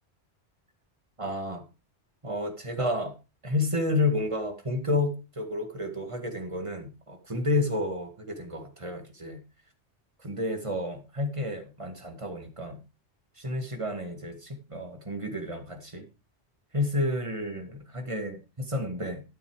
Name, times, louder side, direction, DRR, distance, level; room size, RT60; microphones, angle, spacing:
voice 1, 1.2-1.6 2.2-3.1 3.4-9.4 10.2-12.8 13.4-16.1 16.7-19.2, left 2 dB, 25° right, 6 dB, 2.0 m, -31 dB
12.5 x 7.1 x 4.8 m, 0.30 s
omnidirectional pair, 1.2 m